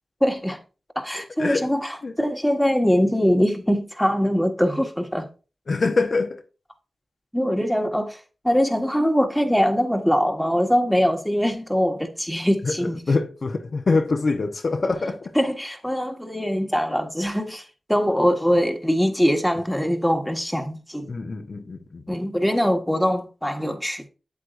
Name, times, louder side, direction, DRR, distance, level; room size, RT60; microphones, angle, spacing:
voice 1, 0.2-0.6 0.9-5.3 7.3-12.9 15.3-21.1 22.1-24.1, equal, 5° left, 1.6 m, -22 dB
voice 2, 5.7-6.4 12.6-15.3 21.1-22.0, left 3 dB, 60° left, 0.9 m, -24 dB
8.4 x 7.7 x 2.6 m
cardioid pair, 45°, 0 cm